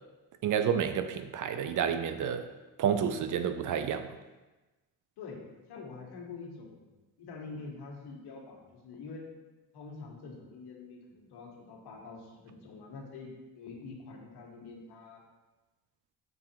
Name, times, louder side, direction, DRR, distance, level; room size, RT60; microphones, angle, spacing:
voice 1, 0.4-2.5 2.8-4.1, right 8 dB, 50° right, 9 dB, 0.5 m, -30 dB
voice 2, 5.2-6.9 7.2-9.2 9.7-15.2, left 4 dB, 70° left, 0 dB, 1.5 m, -46 dB
6.3 x 3.8 x 4.4 m, 1.1 s
cardioid pair, 95°, 41 cm